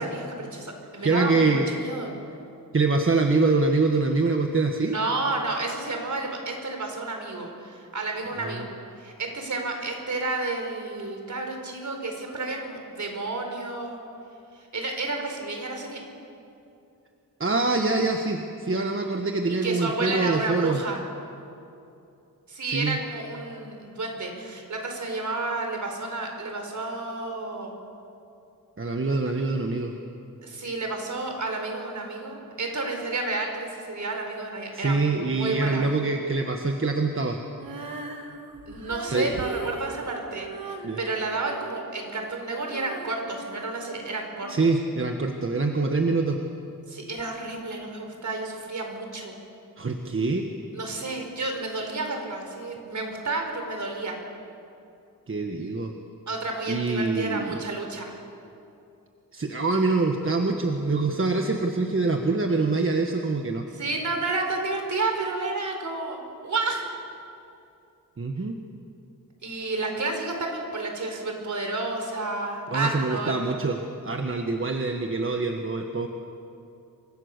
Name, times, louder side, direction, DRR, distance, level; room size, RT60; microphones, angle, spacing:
voice 1, 0.0-2.1 4.9-8.7 9.0-14.0 14.7-16.0 19.5-21.0 22.5-27.7 30.4-35.9 38.7-44.5 46.9-49.3 50.7-54.2 56.3-58.2 63.7-66.9 69.4-73.4, right 3 dB, 60° right, 3 dB, 4.7 m, -31 dB
voice 2, 1.0-1.7 2.7-5.0 8.4-8.6 17.4-20.8 22.7-23.0 28.8-29.9 34.7-37.4 39.1-39.3 40.8-41.0 44.5-46.4 49.8-50.5 55.3-55.9 56.7-57.6 59.3-63.6 68.2-68.6 72.7-73.8 74.0-76.1, right 3 dB, 40° right, 3 dB, 1.5 m, -25 dB
Female singing, 37.6-44.6, right 4 dB, 80° right, 2.2 m, -39 dB
28.5 x 24.5 x 6.8 m, 2.7 s
wide cardioid pair, 125°, 34 cm